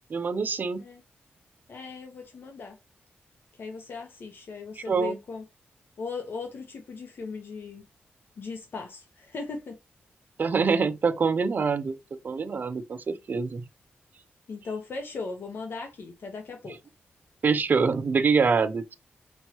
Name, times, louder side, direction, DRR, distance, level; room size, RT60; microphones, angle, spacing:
voice 1, 0.1-0.8 4.9-5.2 10.4-12.0 12.2-13.7 17.4-18.9, right 5 dB, 50° right, 0.6 m, -25 dB
voice 2, 1.7-2.8 3.5-5.4 6.0-7.8 8.4-9.8 14.5-16.8, left 4 dB, 65° left, 1.0 m, -38 dB
5.3 x 3.2 x 2.9 m
cardioid pair, 90°, 4 cm